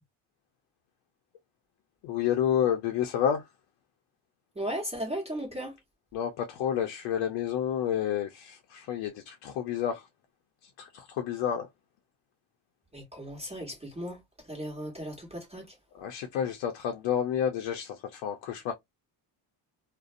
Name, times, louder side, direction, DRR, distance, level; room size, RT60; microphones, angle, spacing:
voice 1, 2.0-3.4 6.1-10.0 10.8-11.7 15.9-18.7, left 9 dB, 70° left, 0.6 m, -30 dB
voice 2, 4.5-5.7 12.9-14.2 14.5-15.7, equal, 15° right, 1.2 m, -36 dB
2.4 x 2.2 x 2.5 m
supercardioid pair, 90°, 45 cm